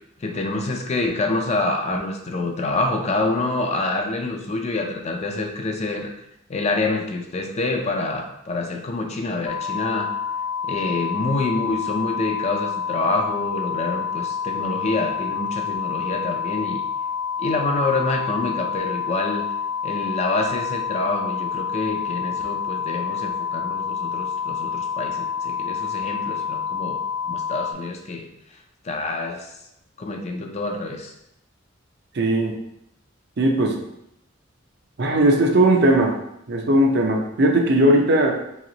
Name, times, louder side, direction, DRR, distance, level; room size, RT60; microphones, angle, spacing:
voice 1, 0.2-6.1 6.5-10.2 10.6-16.8 17.4-19.5 19.8-28.3 28.8-29.6 30.0-31.1, left 2 dB, 35° left, 3 dB, 0.4 m, -26 dB
sound 1, 9.5-27.7, left 6 dB, 85° left, 0.5 m, -28 dB
voice 2, 32.1-32.6 33.4-33.8 35.0-36.2 36.5-38.3, right 1 dB, 55° right, 2 dB, 0.6 m, -18 dB
3.1 x 2.9 x 3.9 m, 0.81 s
head